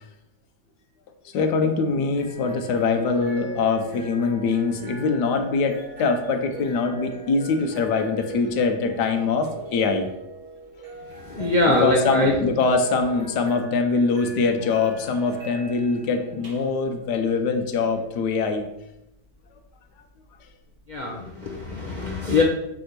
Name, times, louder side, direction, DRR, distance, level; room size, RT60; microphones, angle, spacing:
voice 1, 1.3-10.1 11.7-18.7 21.1-21.2, left 4 dB, 80° left, 5 dB, 1.4 m, -23 dB
sound 1, 1.8-21.0, right 2 dB, 85° right, 2.9 m, -42 dB
voice 2, 11.2-12.3 20.9-22.4, left 2 dB, 35° left, -1 dB, 0.8 m, -23 dB
6.3 x 4.4 x 6.6 m, 0.85 s
omnidirectional pair, 1.8 m